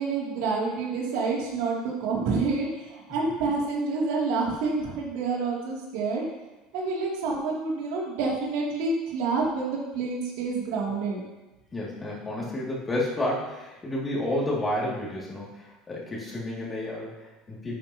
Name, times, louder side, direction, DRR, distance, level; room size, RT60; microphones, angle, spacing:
voice 1, 0.0-6.2 6.7-11.2, right 4 dB, 75° right, -3 dB, 2.6 m, -28 dB
voice 2, 11.7-17.8, left 1 dB, 15° left, -5 dB, 2.4 m, -31 dB
11.0 x 9.0 x 2.9 m, 1.1 s
cardioid pair, 160°, 0 cm